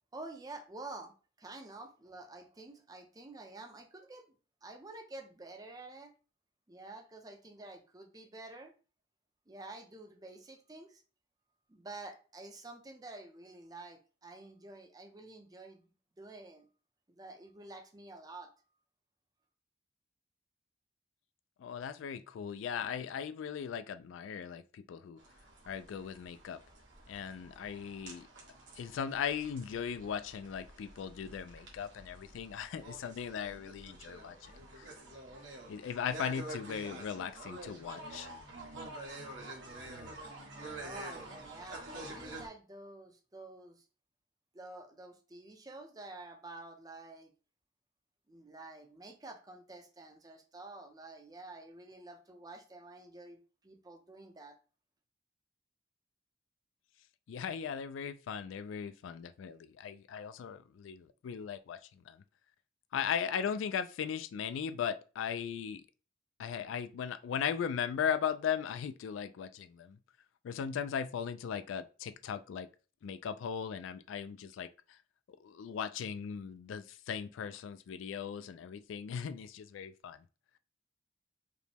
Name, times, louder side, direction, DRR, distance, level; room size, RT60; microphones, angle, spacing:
voice 1, 0.1-4.3 4.6-6.1 6.7-8.7 9.5-11.0 11.7-15.9 16.2-16.7 17.1-18.5 40.8-43.8 44.5-47.3 48.3-54.6, right 2 dB, 20° right, 0.6 m, -49 dB
voice 2, 21.6-25.2 25.7-26.6 27.1-28.3 28.8-35.0 35.7-38.3 57.3-62.2 62.9-65.8 66.4-70.0 70.4-72.7 73.0-75.0 75.3-80.2, left 7 dB, 85° left, 0.3 m, -38 dB
sound 1, 25.2-42.5, right 2 dB, 80° right, 1.4 m, -48 dB
5.0 x 2.1 x 3.3 m
head